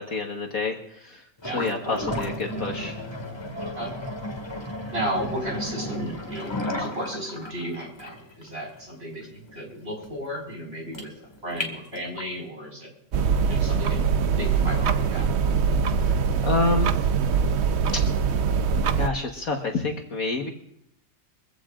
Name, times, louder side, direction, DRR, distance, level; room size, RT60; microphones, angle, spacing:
voice 1, 0.0-1.2 1.5-3.0 16.0-16.9 17.9-18.0 19.0-20.5, left 3 dB, 50° left, 2 dB, 1.7 m, -28 dB
sound 1, 1.4-12.4, left 1 dB, 15° left, 2.0 m, -34 dB
voice 2, 1.4-2.1 3.8-3.9 4.9-11.1 11.4-12.9 13.5-15.3, equal, 35° right, -1 dB, 5.5 m, -34 dB
sound 2, 13.1-19.1, right 6 dB, 75° right, 0.6 m, -23 dB
24.0 x 16.0 x 2.5 m, 0.75 s
omnidirectional pair, 2.0 m